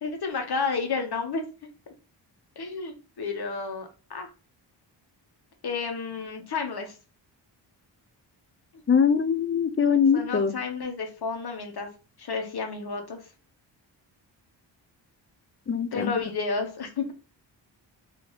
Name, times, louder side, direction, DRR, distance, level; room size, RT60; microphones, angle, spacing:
voice 1, 0.0-1.4 2.6-4.3 5.6-6.9 10.1-11.9 12.2-13.2 15.9-17.1, left 4 dB, 55° left, 1.1 m, -31 dB
voice 2, 8.9-10.6 15.7-16.1, left 6 dB, 30° left, 0.4 m, -22 dB
3.0 x 2.8 x 3.9 m
cardioid pair, 55°, 46 cm